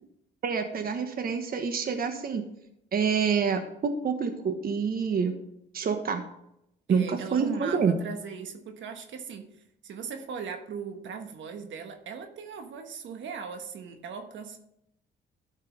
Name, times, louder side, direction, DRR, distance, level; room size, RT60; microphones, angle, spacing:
voice 1, 0.4-2.4 2.9-5.4 5.7-6.2 6.9-8.0, right 6 dB, 50° right, 6 dB, 1.2 m, -27 dB
voice 2, 6.9-9.5 9.8-14.6, right 6 dB, 70° right, 5 dB, 1.4 m, -39 dB
12.5 x 5.4 x 5.4 m, 0.79 s
cardioid pair, 90°, 20 cm